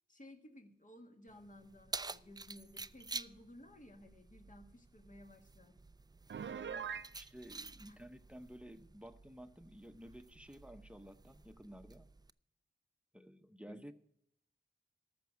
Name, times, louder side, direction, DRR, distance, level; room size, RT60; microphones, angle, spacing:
voice 1, 0.1-5.8 7.9-8.0 13.7-13.9, left 1 dB, 45° left, 5 dB, 1.7 m, -57 dB
Keys jangling, 1.3-12.3, right 3 dB, 20° right, 0.4 m, -50 dB
Piano, 6.3-7.1, right 7 dB, 80° right, 0.5 m, -41 dB
voice 2, 6.6-12.1 13.1-13.9, equal, 5° right, 10 dB, 0.8 m, -53 dB
13.5 x 6.1 x 9.3 m, 0.75 s
wide cardioid pair, 55°, 19 cm